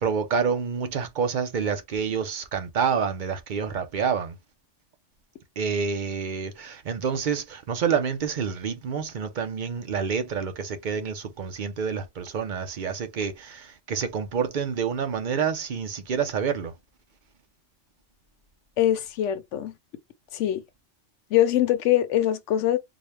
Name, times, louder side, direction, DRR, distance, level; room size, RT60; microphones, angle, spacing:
voice 1, 0.0-4.3 5.6-16.7, right 6 dB, 50° right, 0.7 m, -28 dB
voice 2, 18.8-19.7 20.3-20.6 21.3-22.8, left 12 dB, 75° left, 0.9 m, -23 dB
3.9 x 2.2 x 3.2 m
omnidirectional pair, 1.3 m